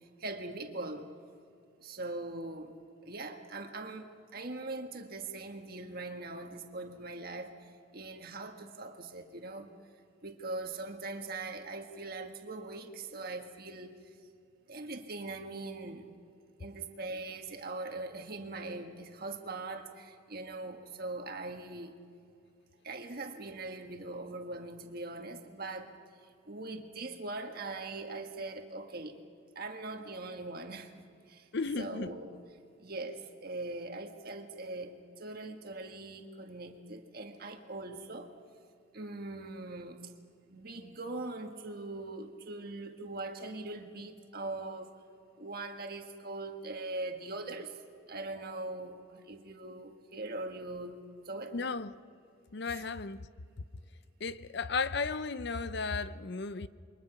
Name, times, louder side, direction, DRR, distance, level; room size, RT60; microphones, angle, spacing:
voice 1, 0.2-1.1 1.8-2.7 3.0-9.7 10.2-14.0 14.7-16.1 16.6-21.9 22.8-25.9 26.5-29.2 29.6-31.5 31.8-32.3 32.8-38.3 38.9-40.1 40.5-44.9 45.4-47.8 48.1-51.5 52.7-52.8, right 2 dB, 50° right, 1.7 m, -41 dB
voice 2, 31.5-32.1 51.5-51.9 52.5-53.3 54.2-56.7, left 4 dB, 55° left, 0.6 m, -34 dB
28.0 x 22.5 x 5.8 m
head